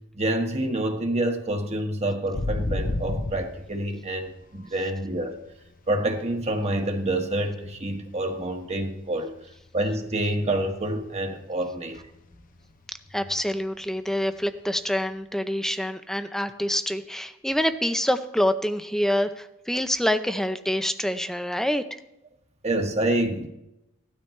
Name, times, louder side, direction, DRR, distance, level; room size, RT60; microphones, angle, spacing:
voice 1, 0.0-5.4 5.9-9.3 9.7-12.0 22.6-23.5, right 1 dB, 35° right, 4 dB, 1.5 m, -27 dB
sound 1, 2.3-5.7 6.0-8.3 8.5-8.9 9.2-11.1 11.4-11.5 11.9-12.3 12.6-12.7 14.9-15.0, left 2 dB, 40° left, 0.7 m, -32 dB
voice 2, 13.1-21.8, equal, ahead, 9 dB, 0.6 m, -26 dB
17.0 x 12.5 x 3.3 m, 0.86 s
head